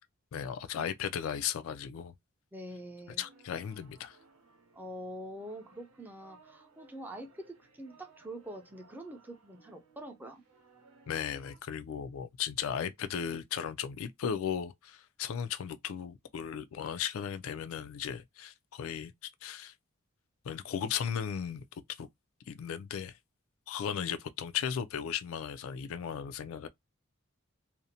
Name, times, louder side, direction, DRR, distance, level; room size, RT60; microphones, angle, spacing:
voice 1, 0.3-2.1 3.2-4.2 11.1-19.7 20.4-21.7 22.0-22.1 22.5-23.2 23.7-26.7, left 8 dB, 70° left, 0.3 m, -36 dB
voice 2, 2.5-3.2 4.7-10.4, right 1 dB, 10° right, 0.4 m, -45 dB
sound 1, 3.2-11.6, right 4 dB, 90° right, 0.8 m, -62 dB
2.5 x 2.0 x 2.7 m
head